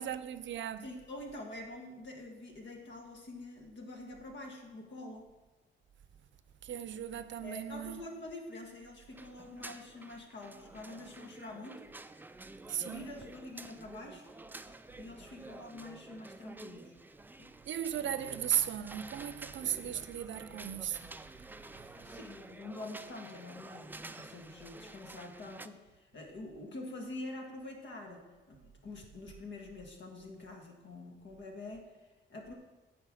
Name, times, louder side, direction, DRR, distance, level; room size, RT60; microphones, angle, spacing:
voice 1, 0.0-0.8 6.6-8.0 12.7-13.1 17.7-21.1 21.8-21.9, right 10 dB, 70° right, 0.5 m, -36 dB
voice 2, 0.8-5.3 7.4-11.9 12.8-14.2 15.0-16.9 17.4-17.5 21.9-32.5, left 2 dB, 65° left, 1.7 m, -46 dB
sound 1, 9.1-25.7, right 2 dB, 10° right, 0.3 m, -50 dB
9.7 x 4.6 x 6.4 m
wide cardioid pair, 115°, 20 cm